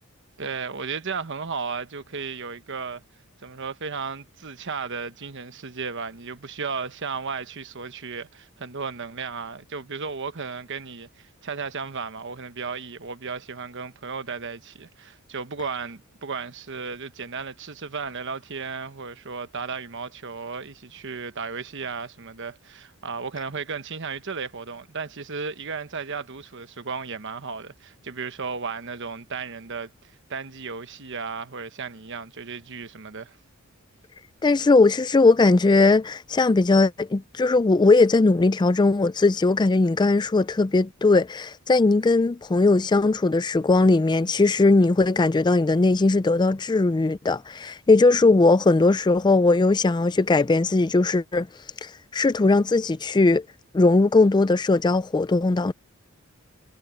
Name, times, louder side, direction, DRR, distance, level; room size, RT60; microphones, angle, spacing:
voice 1, 0.4-3.0 3.4-33.4, right 5 dB, 55° right, 1.1 m, -34 dB
voice 2, 34.4-51.5 51.8-53.4 53.7-55.7, left 3 dB, 20° left, 0.4 m, -19 dB
head